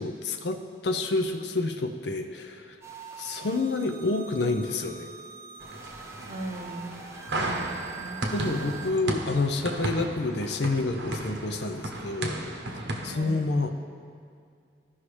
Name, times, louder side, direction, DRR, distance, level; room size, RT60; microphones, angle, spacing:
voice 1, 0.0-2.7 3.2-5.1 8.3-12.4 13.0-13.7, left 3 dB, 75° left, 6 dB, 0.6 m, -28 dB
sound 1, 2.8-8.9, right 6 dB, 15° right, 0.5 m, -44 dB
sound 2, 5.6-13.1, right 1 dB, 85° right, 0.9 m, -34 dB
voice 2, 6.2-7.0 7.4-8.2 13.1-13.4, right 1 dB, 55° right, 0 dB, 0.8 m, -38 dB
14.5 x 5.7 x 3.3 m, 2.3 s
head